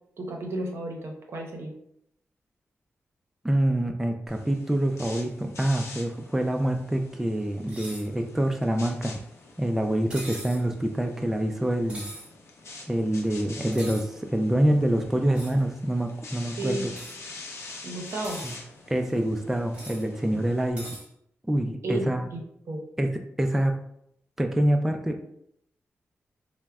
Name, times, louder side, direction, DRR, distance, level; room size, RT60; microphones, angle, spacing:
voice 1, 0.2-1.7 16.6-16.9 17.8-18.4 21.8-22.4 22.7-22.8, right 1 dB, 65° right, 1 dB, 0.6 m, -32 dB
voice 2, 3.4-9.2 9.6-12.1 12.9-16.9 18.4-18.5 18.9-20.9 21.5-22.3 23.0-23.1 23.4-23.7 24.4-25.3, right 1 dB, 5° right, 4 dB, 0.3 m, -26 dB
sound 1, 4.3-20.7, left 3 dB, 75° left, 0.6 m, -46 dB
sound 2, 7.7-8.1 10.1-10.6 11.9-12.3 13.7-14.1 15.3-15.6 16.9-17.1 18.1-18.5 19.7-20.0 20.8-21.0, right 1 dB, 25° right, 1.4 m, -41 dB
4.5 x 2.0 x 2.2 m, 0.73 s
cardioid pair, 80°, 5 cm